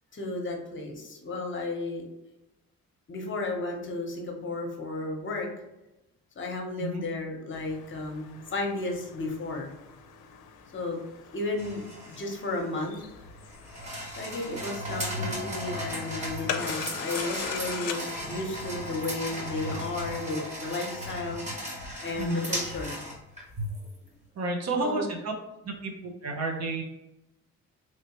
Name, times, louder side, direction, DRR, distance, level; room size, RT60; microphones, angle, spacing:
voice 1, 0.1-2.0 3.1-5.5 6.4-9.7 10.7-11.0 11.3-13.0 14.2-21.4 22.0-23.0 24.8-25.0, left 2 dB, 40° left, 2 dB, 0.9 m, -33 dB
sound 1, 7.5-19.9, left 8 dB, 90° left, 0.5 m, -42 dB
sound 2, 11.6-24.0, equal, 25° right, 1.3 m, -36 dB
voice 2, 24.4-25.3 25.6-26.8, right 2 dB, 60° right, 3 dB, 0.8 m, -31 dB
3.2 x 2.9 x 3.0 m, 0.94 s
cardioid pair, 90°, 30 cm